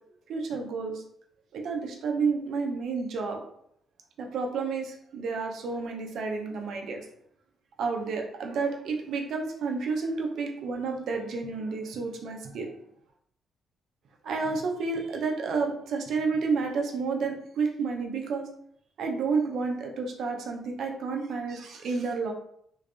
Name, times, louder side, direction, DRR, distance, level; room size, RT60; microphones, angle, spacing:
voice 1, 0.3-1.0 1.5-3.4 4.2-7.0 7.8-12.7 14.2-18.5 19.0-22.3, right 4 dB, 70° right, 2 dB, 0.6 m, -30 dB
3.3 x 2.4 x 3.3 m, 0.69 s
cardioid pair, 90°, 0 cm